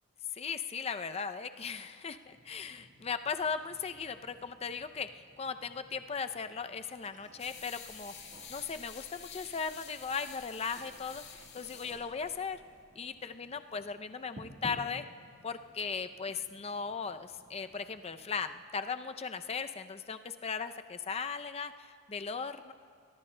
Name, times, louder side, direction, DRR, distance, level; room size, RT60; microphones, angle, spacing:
voice 1, 0.3-12.6 13.0-15.1 15.4-22.7, left 5 dB, 30° left, 9 dB, 0.4 m, -38 dB
sound 1, 2.2-18.6, right 1 dB, 35° right, 1.4 m, -56 dB
sound 2, 7.4-12.8, left 7 dB, 55° left, 1.9 m, -50 dB
23.5 x 21.5 x 2.2 m, 2.4 s
head